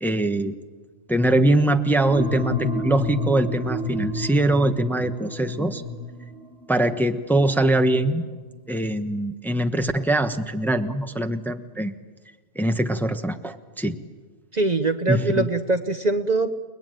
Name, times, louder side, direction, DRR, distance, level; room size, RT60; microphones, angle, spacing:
voice 1, 0.0-0.5 1.1-5.8 6.7-8.3 8.7-11.9 12.5-14.0 15.1-15.5, right 1 dB, ahead, 7 dB, 1.1 m, -22 dB
sound 1, 2.0-8.6, left 1 dB, 65° right, 4.2 m, -30 dB
voice 2, 14.5-16.5, right 2 dB, 40° right, 8 dB, 1.1 m, -22 dB
30.0 x 21.0 x 9.2 m, 1.4 s
omnidirectional pair, 1.2 m